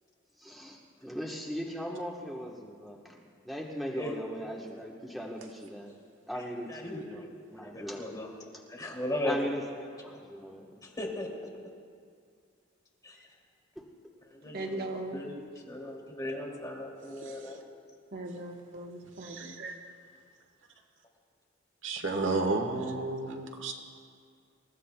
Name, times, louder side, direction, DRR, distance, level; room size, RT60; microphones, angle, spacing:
voice 1, 0.4-3.2 3.4-5.9 6.3-7.2 7.5-8.2 9.2-9.6 10.0-10.8 13.8-13.9, equal, ahead, -2 dB, 1.1 m, -39 dB
voice 2, 6.3-9.6 10.1-10.2 10.8-11.3 13.0-13.3 14.3-14.9 15.1-17.6, left 1 dB, 20° left, -2 dB, 2.6 m, -38 dB
voice 3, 14.5-15.2 18.1-19.6, right 2 dB, 50° right, 2 dB, 1.0 m, -38 dB
voice 4, 17.2-17.5 19.2-19.8 21.8-23.7, right 3 dB, 70° right, 4 dB, 1.3 m, -32 dB
27.0 x 15.0 x 2.3 m, 2.2 s
head